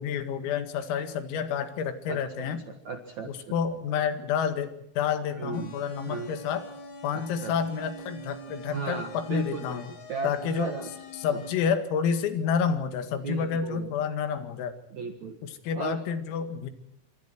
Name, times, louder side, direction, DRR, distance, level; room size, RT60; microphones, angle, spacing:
voice 1, 0.0-2.6 3.3-6.6 7.0-9.9 10.2-10.7 11.2-14.8 15.4-16.7, left 7 dB, 90° left, 9 dB, 4.7 m, -29 dB
voice 2, 2.1-3.6 5.3-5.7 6.0-6.3 7.1-7.5 8.7-9.8 10.1-10.9 11.3-11.4 13.2-13.9 14.9-15.4 15.7-16.0, right 4 dB, 60° right, 6 dB, 1.9 m, -36 dB
sound 1, 5.5-11.5, right 1 dB, 55° left, 5.8 m, -45 dB
28.5 x 25.5 x 4.6 m, 0.75 s
omnidirectional pair, 5.9 m